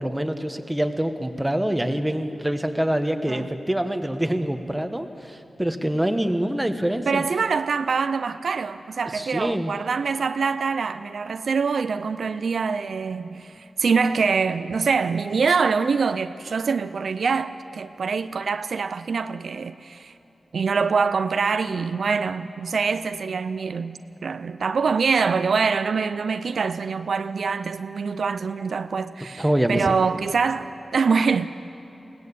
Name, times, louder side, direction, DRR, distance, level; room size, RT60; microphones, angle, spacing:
voice 1, 0.0-7.2 9.1-9.7 29.4-29.9, right 1 dB, 10° right, 1.2 m, -25 dB
voice 2, 7.1-20.1 20.5-31.5, right 5 dB, 70° right, 0.5 m, -24 dB
21.5 x 17.5 x 8.5 m
wide cardioid pair, 100°, 0 cm